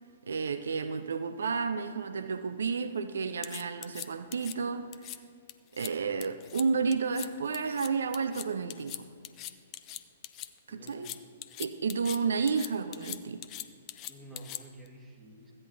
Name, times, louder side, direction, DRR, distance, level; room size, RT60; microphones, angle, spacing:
voice 1, 0.3-5.2 5.7-9.1 10.7-11.1 11.6-13.4, right 5 dB, 60° right, 10 dB, 0.4 m, -31 dB
sound 1, 3.4-4.5 4.9-5.2 5.5-5.9 6.2-6.6 6.9-7.3 7.5-10.5 10.9-12.2 12.5-14.9, left 13 dB, 30° left, 0.5 m, -41 dB
voice 2, 10.7-11.2 14.1-15.5, right 1 dB, 5° right, -2 dB, 1.7 m, -50 dB
15.0 x 9.6 x 2.6 m, 2.2 s
figure-of-eight pair, 115°, 0 cm